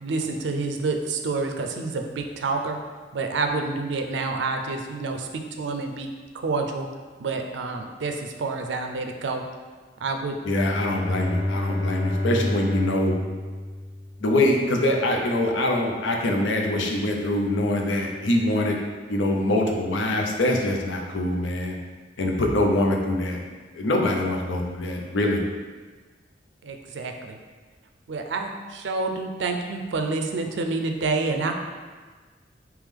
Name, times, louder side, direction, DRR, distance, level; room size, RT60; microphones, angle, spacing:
voice 1, 0.0-2.8 3.1-6.9 7.2-9.5 10.0-10.4 26.6-27.4 28.1-31.5, right 3 dB, 70° right, 4 dB, 0.4 m, -28 dB
voice 2, 10.4-13.1 14.2-18.8 19.1-21.8 22.2-23.4 23.7-25.4, left 1 dB, 80° left, 1 dB, 0.6 m, -24 dB
Bowed string instrument, 10.5-14.4, left 1 dB, 5° right, 0.9 m, -28 dB
3.3 x 3.0 x 3.6 m, 1.4 s
head